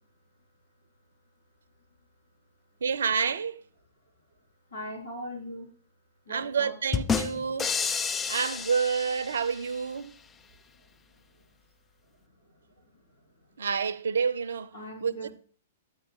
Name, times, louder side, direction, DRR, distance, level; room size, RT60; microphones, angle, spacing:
voice 1, 2.8-3.6 6.3-7.7 8.3-10.2 13.6-15.3, right 6 dB, 65° right, 0.5 m, -29 dB
voice 2, 4.7-5.7 6.3-6.7 14.7-15.3, equal, 75° left, 3.8 m, -39 dB
sound 1, 6.9-9.7, left 6 dB, 15° left, 0.4 m, -30 dB
9.8 x 9.4 x 3.3 m
figure-of-eight pair, 105°, 0 cm